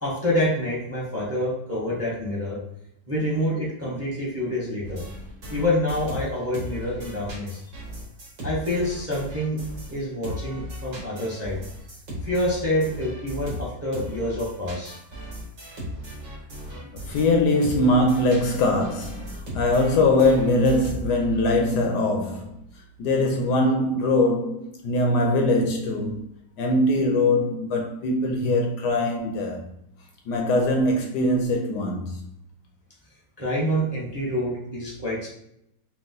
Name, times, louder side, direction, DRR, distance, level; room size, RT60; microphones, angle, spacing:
voice 1, 0.0-2.6 3.1-5.0 5.5-7.6 8.4-9.6 9.9-11.6 12.2-15.0 33.4-35.3, left 1 dB, 10° right, 0.8 m, -27 dB
sound 1, 4.8-10.0 10.2-21.4, equal, 75° right, 2.3 m, -37 dB
voice 2, 16.7-22.6 23.0-26.2 26.6-29.6 30.3-32.2, left 2 dB, 75° left, 1.1 m, -22 dB
4.6 x 2.3 x 3.8 m
omnidirectional pair, 2.0 m